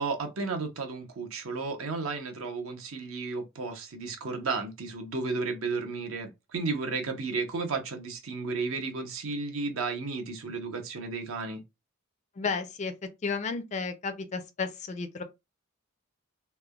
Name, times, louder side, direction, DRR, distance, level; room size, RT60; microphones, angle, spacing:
voice 1, 0.0-11.6, right 4 dB, 70° right, 0.7 m, -33 dB
voice 2, 12.4-12.9 13.2-15.2, left 4 dB, 35° left, 0.4 m, -32 dB
3.1 x 2.1 x 2.2 m
head